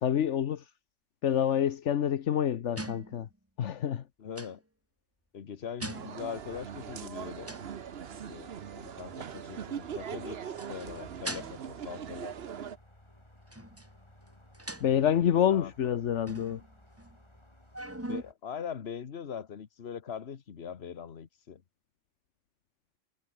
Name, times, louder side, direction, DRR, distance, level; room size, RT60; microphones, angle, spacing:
voice 1, 0.0-0.6 1.2-3.3 3.6-4.0 14.8-16.6, left 9 dB, 75° left, 1.2 m, -27 dB
safe deposit box lock-unlock, 2.8-3.3 4.4-4.6 5.8-6.4 7.5-7.8 8.1-8.3 9.1-9.3 10.0-10.1 10.4-11.8 13.5-13.9 14.3-14.4 14.5-15.1 16.3-17.4 17.7-18.2, right 1 dB, 10° right, 2.1 m, -41 dB
voice 2, 4.2-4.6 5.3-7.5 8.3-12.3 15.1-15.7 18.1-21.6, left 7 dB, 60° left, 1.4 m, -41 dB
sound 1, 5.9-12.8, right 8 dB, 55° right, 1.1 m, -41 dB
sound 2, 6.4-18.3, left 1 dB, 20° left, 4.2 m, -58 dB
omnidirectional pair, 1.2 m